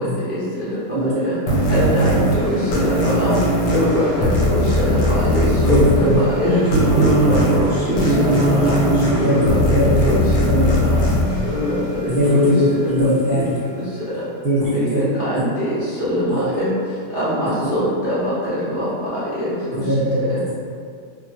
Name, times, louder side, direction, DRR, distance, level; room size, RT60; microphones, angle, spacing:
voice 1, 0.3-0.8 1.2-1.3 1.7-3.4 3.7-5.0 5.2-6.6 6.9-7.6 7.9-8.7 9.2-9.5 9.7-10.2 10.9-11.0 11.4-11.7 12.0-12.1 12.4-12.9 13.3-13.4 14.7-16.7 17.1-19.5, equal, 45° left, -12 dB, 0.8 m, -23 dB
sound 1, 1.5-12.6, equal, 85° left, 1.3 m, -20 dB
voice 2, 5.7-6.2 7.3-7.4 9.2-10.1 10.4-10.9 12.1-12.5 12.9-13.5 14.4-15.0 16.3-16.5 19.8-20.4, equal, 40° right, -13 dB, 1.1 m, -19 dB
voice 3, 6.4-9.2, equal, 70° right, -10 dB, 0.6 m, -21 dB
2.9 x 2.1 x 2.7 m, 2.2 s
omnidirectional pair, 1.8 m